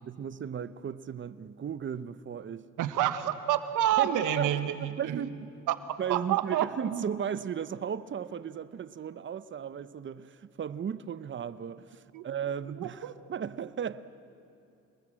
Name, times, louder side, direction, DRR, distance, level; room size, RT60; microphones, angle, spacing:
voice 1, 0.0-2.7 4.0-5.4 6.0-14.1, right 8 dB, 40° right, 0.8 m, -36 dB
voice 2, 2.8-4.7 5.1-5.2 5.7-5.8 6.1-7.0 12.1-12.2 12.8-13.1, right 11 dB, 90° right, 1.3 m, -28 dB
27.5 x 20.5 x 7.6 m
cardioid pair, 90°, 30 cm